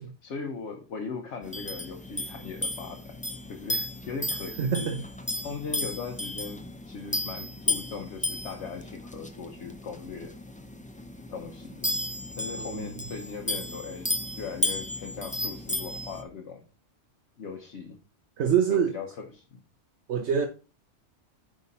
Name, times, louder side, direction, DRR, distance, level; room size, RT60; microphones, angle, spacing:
voice 1, 0.2-3.2 3.5-4.9 5.4-10.3 11.3-11.9 12.4-14.1 14.4-16.6 17.4-18.0 18.7-19.6, left 5 dB, 70° left, 1.2 m, -39 dB
sound 1, 1.4-16.2, left 2 dB, 10° left, 0.4 m, -34 dB
voice 2, 4.6-5.0 12.6-12.9 18.4-18.9 20.1-20.5, right 7 dB, 70° right, 1.0 m, -25 dB
9.3 x 3.7 x 4.1 m
omnidirectional pair, 1.2 m